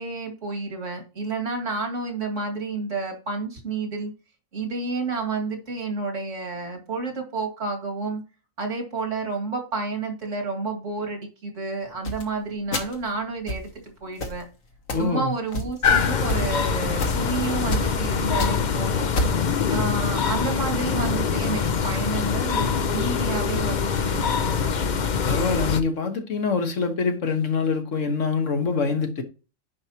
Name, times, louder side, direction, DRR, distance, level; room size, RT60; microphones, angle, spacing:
voice 1, 0.0-4.1 4.5-8.2 8.6-14.5 15.0-19.1 19.7-24.7, right 3 dB, 65° right, 2.5 m, -30 dB
sound 1, 12.0-12.2 12.7-13.0 13.5-13.7 14.2-14.4 14.9-15.1 15.5-15.9 16.3-16.4 17.0-17.3 17.7-17.9 18.2-18.7 19.1-19.5, left 1 dB, 85° left, 2.0 m, -28 dB
voice 2, 14.9-15.3 25.2-29.2, left 4 dB, 65° left, 1.7 m, -25 dB
sound 2, 15.8-25.8, left 6 dB, 45° left, 0.7 m, -24 dB
10.5 x 4.7 x 2.9 m
omnidirectional pair, 1.4 m